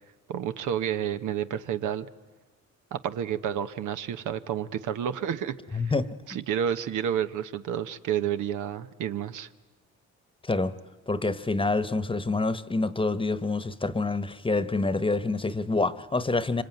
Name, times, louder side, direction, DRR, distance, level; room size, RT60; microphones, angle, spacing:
voice 1, 0.3-2.1 2.9-5.9 6.3-9.5, right 9 dB, 80° right, 10 dB, 1.1 m, -30 dB
voice 2, 5.7-6.1 10.4-10.8 11.1-16.6, left 3 dB, 15° left, 14 dB, 1.1 m, -27 dB
25.5 x 24.5 x 9.4 m, 1.2 s
cardioid pair, 90°, 30 cm